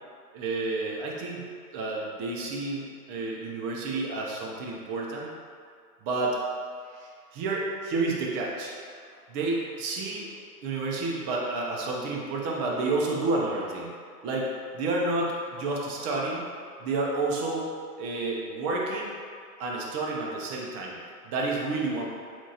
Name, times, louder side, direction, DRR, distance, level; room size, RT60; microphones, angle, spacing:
voice 1, 0.3-1.4 1.7-5.3 6.0-6.4 6.9-8.7 9.3-10.3 10.6-13.9 14.2-16.4 16.8-17.7 18.0-19.1 19.6-21.0 21.2-22.1, right 2 dB, 25° right, -2 dB, 0.6 m, -30 dB
7.1 x 2.5 x 2.8 m, 2.2 s
hypercardioid pair, 125°, 48 cm